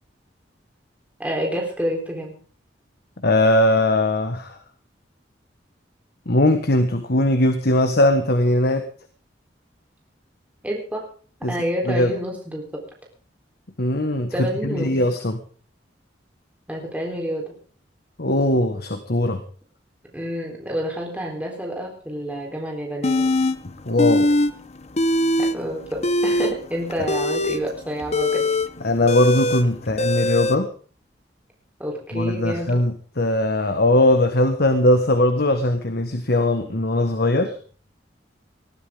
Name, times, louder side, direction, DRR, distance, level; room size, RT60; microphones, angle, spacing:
voice 1, 1.2-2.3 10.6-11.1 11.5-12.8 14.3-14.9 16.7-17.5 20.1-23.3 25.4-28.4 31.8-32.8, equal, 10° right, 0 dB, 3.8 m, -28 dB
voice 2, 3.2-4.6 6.2-8.8 11.4-11.6 11.9-12.1 13.8-15.4 18.2-19.4 23.9-24.3 28.8-30.7 32.1-37.5, left 1 dB, 60° left, 8 dB, 1.5 m, -20 dB
sound 1, 23.0-23.6 24.0-24.5 24.8-25.6 25.9-30.6, left 1 dB, 35° left, 1.0 m, -21 dB
20.5 x 14.0 x 3.7 m, 0.42 s
head